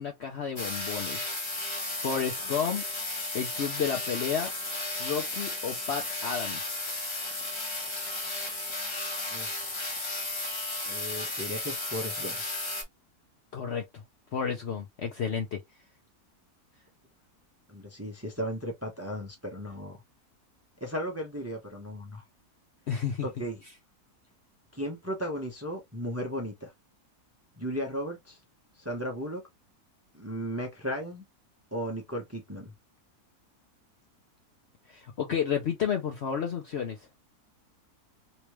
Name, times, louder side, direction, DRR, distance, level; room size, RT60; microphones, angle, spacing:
voice 1, 0.0-1.3 2.0-2.8 3.3-4.5 5.0-6.6 13.5-13.8 14.3-15.6 22.9-23.3 34.9-37.0, left 7 dB, 60° left, 0.8 m, -31 dB
sound 1, 0.6-12.8, left 2 dB, 20° left, 0.8 m, -34 dB
voice 2, 10.9-12.4 17.7-20.0 20.8-22.2 23.2-23.6 24.7-26.7 27.6-28.4 28.8-29.4 30.1-31.2 31.7-32.7, equal, 15° right, 0.7 m, -35 dB
3.2 x 3.0 x 3.0 m
omnidirectional pair, 1.7 m